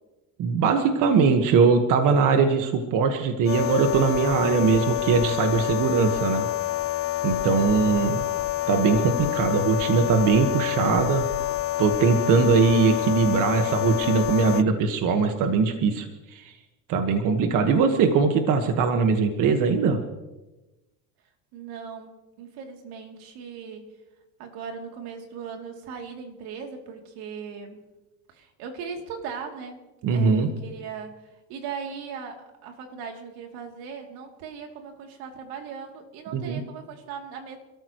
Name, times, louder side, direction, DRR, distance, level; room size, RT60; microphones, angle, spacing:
voice 1, 0.4-6.5 7.2-8.2 8.7-11.2 11.8-16.5 16.9-20.0 30.0-30.5 36.3-36.6, right 5 dB, 55° right, 6 dB, 1.6 m, -21 dB
sound 1, 3.4-14.6, left 16 dB, 40° left, 0.4 m, -28 dB
voice 2, 21.5-23.9 24.4-27.8 28.3-29.8 30.1-37.6, right 6 dB, 70° right, 3 dB, 3.1 m, -38 dB
27.5 x 14.0 x 3.1 m, 1.0 s
cardioid pair, 120°, 38 cm